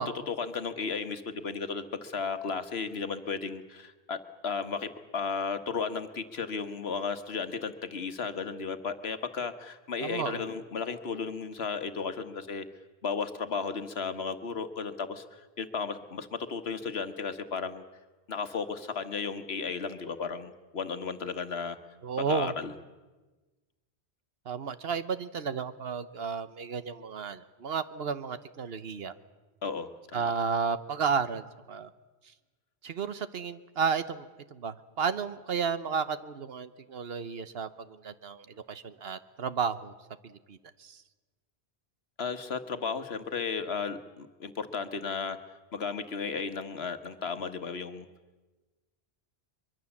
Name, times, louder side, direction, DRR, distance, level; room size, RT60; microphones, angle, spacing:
voice 1, 0.3-12.6 13.0-17.8 18.3-21.8 22.2-22.7 29.6-30.3 42.2-45.4 45.7-48.0, left 5 dB, 70° left, 10 dB, 1.5 m, -34 dB
voice 2, 10.0-10.5 22.0-22.5 24.5-29.1 30.1-31.9 32.8-39.9 40.2-41.0, right 6 dB, 70° right, 13 dB, 1.2 m, -33 dB
23.5 x 23.0 x 7.2 m, 1.2 s
omnidirectional pair, 1.1 m